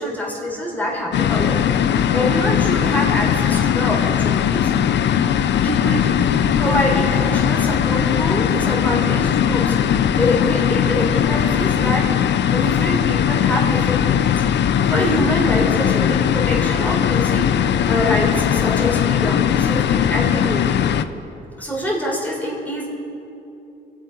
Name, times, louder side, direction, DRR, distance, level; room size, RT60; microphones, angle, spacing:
voice 1, 0.0-1.7 2.1-4.7 5.6-6.1 6.6-9.8 10.2-12.1 12.5-14.3 14.6-17.5 17.9-20.7 21.6-22.9, left 1 dB, 10° left, -3 dB, 3.9 m, -25 dB
sound 1, 1.1-21.0, left 9 dB, 60° left, 0.6 m, -19 dB
25.0 x 8.4 x 5.3 m, 2.8 s
cardioid pair, 90°, 20 cm